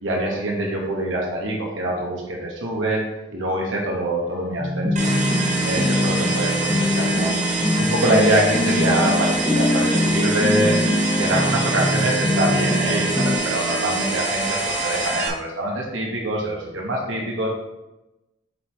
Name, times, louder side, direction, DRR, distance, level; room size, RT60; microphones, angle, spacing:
voice 1, 0.0-3.0 3.3-5.1 5.6-7.3 7.8-10.8 11.1-17.5, right 1 dB, 75° right, -2 dB, 1.3 m, -24 dB
sound 1, 4.6-13.4, left 1 dB, 10° left, 0.7 m, -23 dB
sound 2, 5.0-15.3, right 3 dB, 40° right, 0.9 m, -26 dB
7.5 x 4.7 x 3.2 m, 0.98 s
head